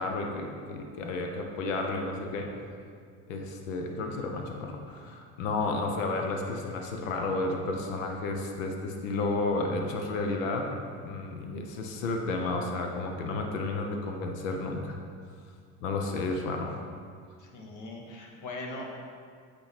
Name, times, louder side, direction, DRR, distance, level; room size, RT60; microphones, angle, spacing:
voice 1, 0.0-2.5 3.3-10.7 11.0-15.0 15.8-16.7, left 3 dB, 90° left, 2 dB, 0.9 m, -32 dB
voice 2, 17.4-19.0, left 2 dB, 50° left, 0 dB, 1.5 m, -40 dB
8.6 x 3.9 x 4.2 m, 2.2 s
supercardioid pair, 90°, 38 cm